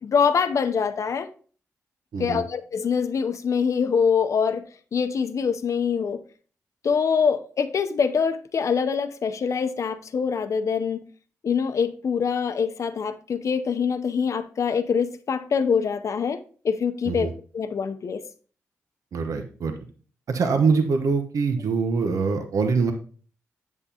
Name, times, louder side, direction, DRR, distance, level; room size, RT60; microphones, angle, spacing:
voice 1, 0.0-1.3 2.2-4.6 4.9-6.2 6.8-11.1 11.4-17.3 17.5-18.2, left 6 dB, 60° left, 0.6 m, -24 dB
voice 2, 2.1-2.4 17.0-17.3 19.1-19.7 20.3-22.9, right 4 dB, 70° right, 0.9 m, -23 dB
8.1 x 7.2 x 2.8 m
cardioid pair, 55°, 6 cm